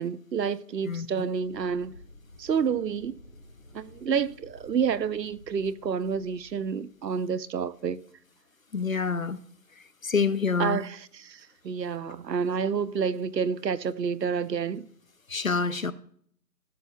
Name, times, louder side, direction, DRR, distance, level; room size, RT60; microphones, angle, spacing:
voice 1, 0.0-1.9 2.4-3.1 3.7-8.0 10.6-14.9, right 6 dB, 80° right, 0.7 m, -29 dB
sound 1, 1.4-7.7, left 1 dB, 20° left, 2.6 m, -52 dB
voice 2, 8.7-9.4 10.0-10.8 15.3-15.9, left 5 dB, 55° left, 0.5 m, -26 dB
16.5 x 6.8 x 2.3 m
figure-of-eight pair, 180°, 49 cm